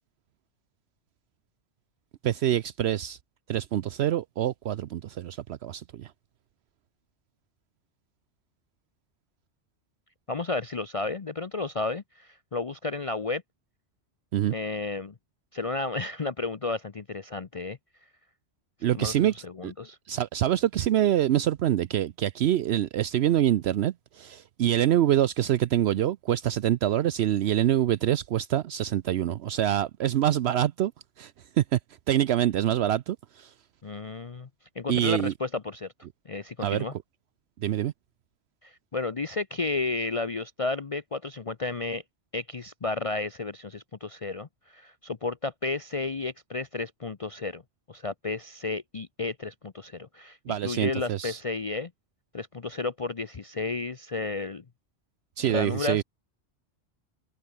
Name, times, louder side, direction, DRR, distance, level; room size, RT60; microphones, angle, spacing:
voice 1, 2.2-3.2 3.5-6.1 14.3-14.5 18.8-19.3 19.6-19.7 20.1-30.9 31.2-31.8 32.1-33.5 34.9-35.3 36.6-36.8 37.6-37.9 50.5-51.4 55.4-56.0, right 11 dB, 70° right, 0.8 m, -25 dB
voice 2, 10.3-13.4 14.5-15.1 15.5-17.8 18.9-20.0 33.8-34.5 34.8-35.9 36.3-36.9 38.6-42.0 42.3-47.6 47.9-51.9 52.3-54.6 55.5-56.0, left 3 dB, 35° left, 0.7 m, -32 dB
omnidirectional pair, 1.2 m